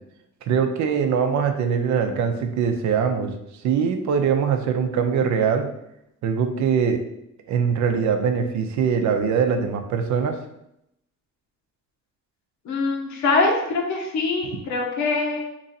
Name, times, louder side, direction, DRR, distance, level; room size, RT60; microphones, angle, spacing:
voice 1, 0.5-3.3 3.6-5.7 6.2-7.0 7.5-10.4, right 6 dB, 70° right, 6 dB, 0.6 m, -22 dB
voice 2, 12.6-15.4, left 3 dB, 70° left, -1 dB, 0.9 m, -23 dB
3.0 x 2.7 x 4.0 m, 0.81 s
cardioid pair, 90°, 30 cm